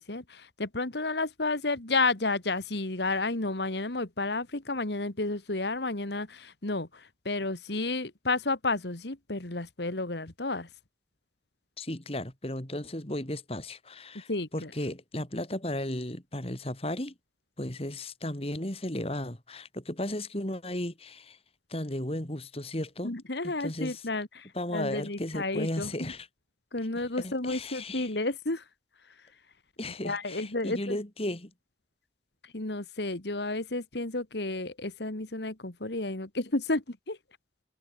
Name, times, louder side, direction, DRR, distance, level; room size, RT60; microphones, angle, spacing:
voice 1, 0.0-10.7 14.3-14.7 23.0-25.9 26.7-28.7 29.1-29.3 29.8-31.0 32.4-37.2, left 2 dB, 70° left, 2.0 m, -31 dB
voice 2, 11.8-17.1 17.6-21.4 21.7-23.1 23.4-24.0 24.5-26.3 27.0-28.1 29.8-31.5, left 1 dB, 30° left, 2.7 m, -35 dB
head